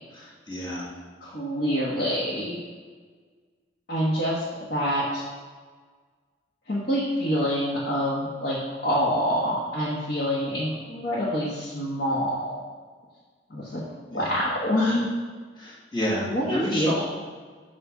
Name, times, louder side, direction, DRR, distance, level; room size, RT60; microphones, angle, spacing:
voice 1, 0.1-0.9 14.1-14.4 15.6-17.0, equal, 25° left, -6 dB, 1.6 m, -30 dB
voice 2, 1.2-2.6 3.9-4.4 4.7-5.2 6.7-8.6 8.8-12.5 13.5-13.8 14.1-15.1 16.2-17.0, equal, 55° left, -7 dB, 1.1 m, -26 dB
7.0 x 2.5 x 5.6 m, 1.5 s
head